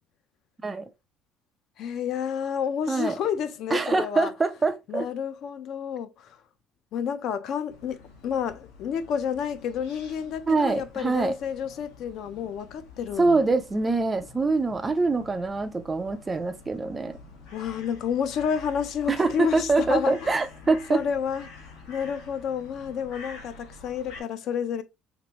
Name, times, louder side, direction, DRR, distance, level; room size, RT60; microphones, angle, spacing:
voice 1, 1.8-4.3 4.9-6.4 6.9-13.4 17.5-20.4 20.9-21.5 21.9-24.8, left 7 dB, 50° left, 0.4 m, -30 dB
voice 2, 2.9-3.2 3.7-5.1 10.5-11.4 13.2-17.2 19.1-21.0, right 3 dB, 15° right, 0.3 m, -24 dB
sound 1, 7.7-24.2, left 4 dB, 85° left, 1.1 m, -48 dB
3.4 x 3.0 x 2.9 m
cardioid pair, 165°, 0 cm